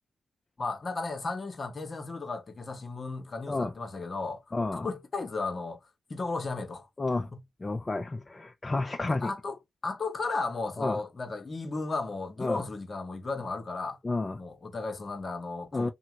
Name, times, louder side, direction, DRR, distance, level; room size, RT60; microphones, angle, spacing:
voice 1, 0.6-4.4 4.7-5.8 6.1-6.9 7.3-7.4 8.7-14.0 14.3-15.9, left 3 dB, 50° left, 0.9 m, -35 dB
voice 2, 4.5-4.9 7.0-7.3 7.6-9.3 10.8-11.0 12.4-12.6 14.0-14.4 15.7-15.9, left 2 dB, 35° left, 0.5 m, -30 dB
2.8 x 2.2 x 2.9 m
supercardioid pair, 45°, 0 cm